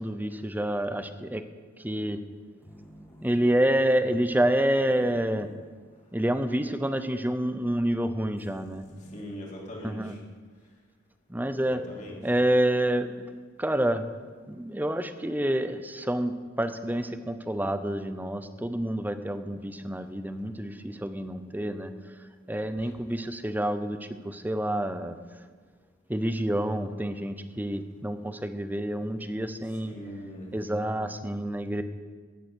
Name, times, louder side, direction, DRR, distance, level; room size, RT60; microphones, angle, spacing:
voice 1, 0.0-1.4 1.8-2.2 3.2-5.5 6.1-8.8 9.8-10.2 11.3-11.8 12.2-14.1 14.5-21.9 22.5-24.0 24.2-25.2 26.1-30.0 30.5-31.8, right 1 dB, 10° right, 10 dB, 0.7 m, -28 dB
sound 1, 2.6-6.4 6.6-6.7 8.4-9.2, equal, 15° left, 2.4 m, -52 dB
voice 2, 9.0-10.2 11.6-12.4 22.8-22.9 29.6-30.5, equal, 40° left, -2 dB, 3.1 m, -41 dB
15.0 x 9.2 x 6.3 m, 1.5 s
head